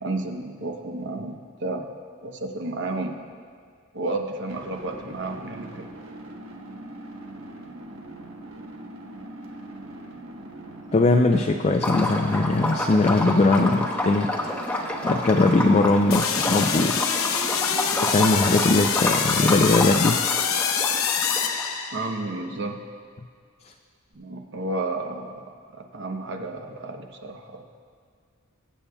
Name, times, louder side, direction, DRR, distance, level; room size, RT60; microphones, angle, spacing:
voice 1, 0.0-1.9 2.2-3.2 3.9-5.9 21.9-22.8 24.1-25.4 25.7-27.6, right 2 dB, 60° right, 3 dB, 0.9 m, -31 dB
sound 1, 4.5-18.2, right 1 dB, 85° right, 1.1 m, -41 dB
voice 2, 10.9-17.0 18.0-20.2, left 2 dB, 30° left, 4 dB, 0.4 m, -21 dB
Liquid, 11.7-21.7, left 1 dB, 5° left, 0.9 m, -29 dB
sound 2, 16.1-22.3, left 7 dB, 80° left, 0.8 m, -25 dB
22.0 x 8.3 x 2.3 m, 2.1 s
head